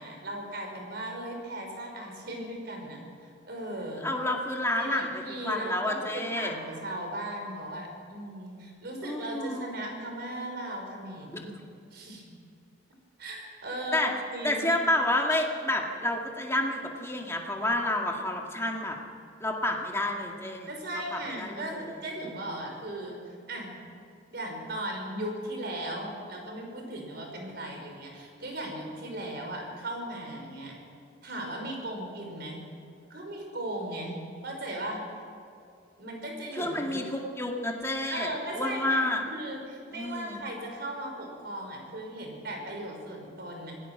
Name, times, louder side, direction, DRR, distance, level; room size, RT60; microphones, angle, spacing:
voice 1, 0.0-3.0 3.2-4.1 4.8-11.5 11.9-12.2 13.2-14.7 20.7-23.7 24.3-30.8 31.2-32.6 33.1-34.2 34.4-35.0 36.0-37.0 38.1-43.7, right 1 dB, 60° right, 1 dB, 5.2 m, -37 dB
voice 2, 3.9-6.5 9.0-9.8 13.9-14.1 14.4-19.0 19.4-20.7 21.1-21.8 36.6-39.2 39.9-40.4, left 1 dB, 15° left, 0 dB, 2.1 m, -29 dB
26.0 x 18.0 x 6.1 m, 2.3 s
head